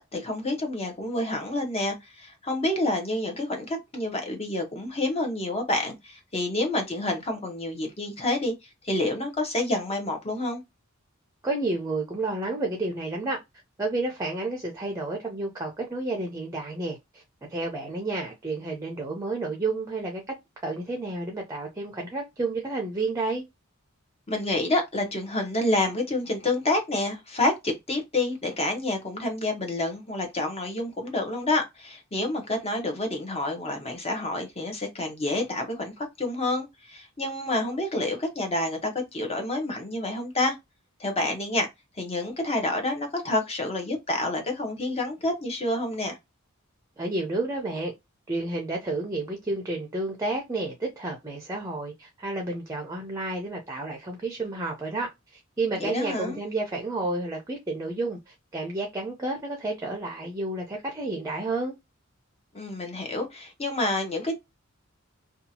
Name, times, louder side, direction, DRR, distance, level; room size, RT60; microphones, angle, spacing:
voice 1, 0.1-10.6 24.3-40.5 41.0-41.7 42.0-46.2 55.8-56.4 62.5-64.4, left 2 dB, 30° left, 0.8 m, -28 dB
voice 2, 11.4-13.4 13.8-17.2 17.5-20.2 20.6-23.4 47.0-47.9 48.3-61.8, right 2 dB, 15° right, 0.6 m, -31 dB
2.7 x 2.3 x 2.7 m
head